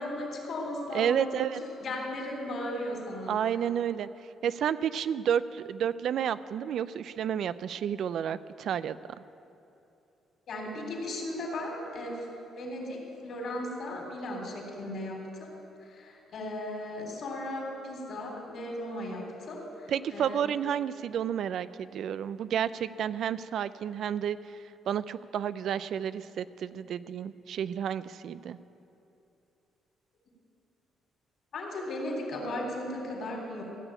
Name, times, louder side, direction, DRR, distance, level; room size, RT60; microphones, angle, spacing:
voice 1, 0.0-1.4 1.8-3.3 10.5-12.3 12.6-15.5 15.8-20.4 31.5-33.6, left 1 dB, 60° left, 1 dB, 3.5 m, -36 dB
voice 2, 0.9-1.6 3.3-4.1 4.4-9.0 19.9-24.4 24.9-28.6, right 9 dB, 70° right, 15 dB, 0.4 m, -31 dB
15.5 x 7.0 x 8.9 m, 2.8 s
cardioid pair, 90°, 0 cm